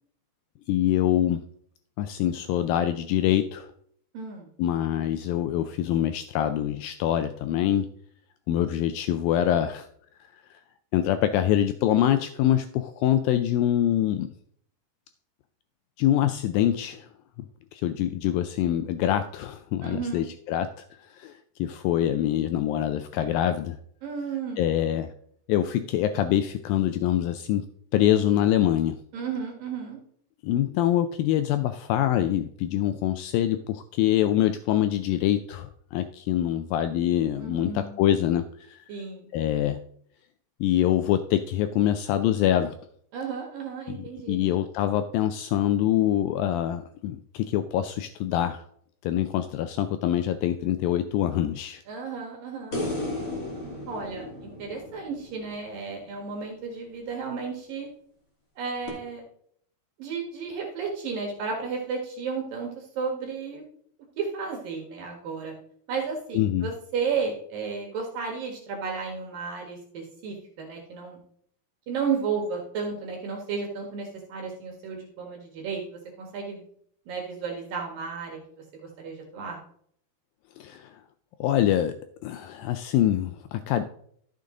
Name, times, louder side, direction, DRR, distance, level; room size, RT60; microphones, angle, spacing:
voice 1, 0.7-1.4 2.0-3.7 4.6-7.9 8.5-9.9 10.3-10.4 10.9-14.3 16.0-17.1 17.7-20.7 21.0-21.3 21.6-23.8 24.6-25.1 25.5-27.7 27.9-29.0 30.4-38.8 39.3-39.8 40.6-42.8 43.9-44.0 44.3-48.6 49.0-51.8 66.3-66.7 80.6-80.9 81.4-81.9 82.2-83.9, left 11 dB, 90° left, 10 dB, 2.0 m, -25 dB
voice 2, 4.1-4.5 19.8-20.3 24.0-24.7 29.1-30.0 37.4-38.0 38.9-39.3 43.1-44.4 51.9-52.8 53.9-57.9 58.6-59.2 60.0-63.6 64.2-65.5 65.9-71.2 71.9-76.6 77.1-79.6, right 5 dB, 65° right, 0 dB, 3.1 m, -33 dB
sound 1, 52.7-56.0 58.9-59.0, left 1 dB, 25° left, 2.2 m, -34 dB
13.5 x 6.7 x 3.8 m, 0.64 s
omnidirectional pair, 4.7 m